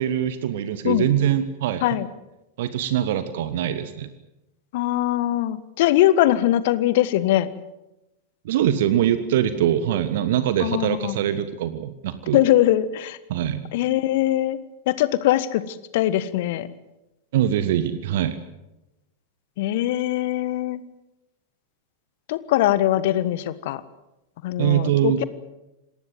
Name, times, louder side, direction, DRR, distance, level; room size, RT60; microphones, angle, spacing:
voice 1, 0.0-1.8 2.6-4.1 8.4-12.4 13.3-13.6 17.3-18.4 24.6-25.2, right 11 dB, 55° right, 12 dB, 1.3 m, -23 dB
voice 2, 4.7-7.5 10.6-11.2 12.3-13.2 13.7-14.6 14.9-16.7 19.6-20.8 22.3-23.8 24.4-25.2, left 13 dB, 50° left, 15 dB, 1.4 m, -21 dB
27.0 x 19.0 x 7.8 m, 0.95 s
figure-of-eight pair, 90°, 0 cm